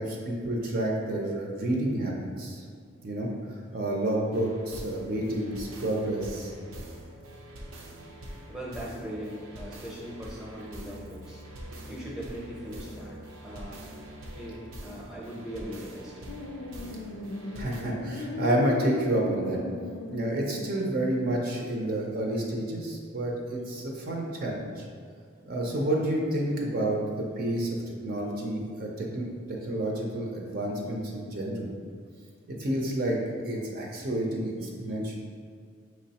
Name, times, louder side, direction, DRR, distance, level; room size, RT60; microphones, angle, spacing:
voice 1, 0.0-2.6 3.0-3.3 3.7-6.5 8.0-8.1 17.5-19.6 20.1-24.9 25.4-31.7 32.5-33.2 33.4-35.2, right 1 dB, 45° right, -1 dB, 0.5 m, -29 dB
sound 1, 4.3-17.8, right 1 dB, 85° right, 0.7 m, -44 dB
voice 2, 8.5-11.4 11.9-13.8 14.3-16.3, equal, 5° right, -5 dB, 0.7 m, -40 dB
sound 2, 16.3-21.1, left 3 dB, 85° left, 0.4 m, -38 dB
6.0 x 3.1 x 2.8 m, 2.1 s
head